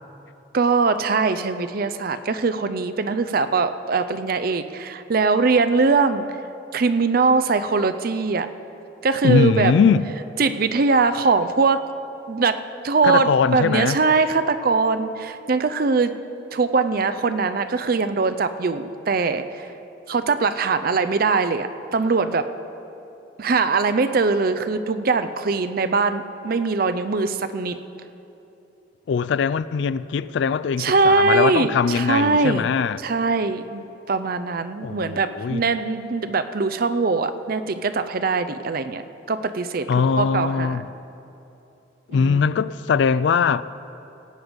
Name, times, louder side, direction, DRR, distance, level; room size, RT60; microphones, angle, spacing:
voice 1, 0.5-6.3 6.7-8.5 9.0-9.7 10.4-11.8 12.3-16.1 16.5-19.6 20.1-22.5 23.4-27.8 30.8-32.7 33.0-39.0 39.3-40.8 42.1-42.4, right 4 dB, 50° right, 0.5 m, -21 dB
voice 2, 9.2-10.1 13.0-14.0 29.1-33.0 34.8-35.6 39.9-40.8 42.1-43.6, left 6 dB, 65° left, 0.3 m, -21 dB
18.0 x 8.0 x 5.2 m
head